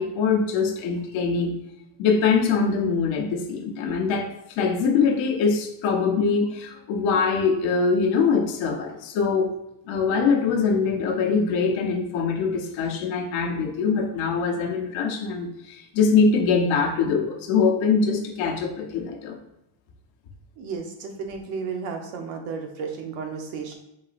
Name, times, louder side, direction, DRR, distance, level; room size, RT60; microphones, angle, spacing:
voice 1, 0.0-1.6 2.0-9.5 9.9-19.4, left 5 dB, 65° left, 2 dB, 0.9 m, -23 dB
voice 2, 20.6-23.7, right 5 dB, 75° right, 3 dB, 1.0 m, -33 dB
4.0 x 3.9 x 2.5 m, 0.86 s
cardioid pair, 170°, 49 cm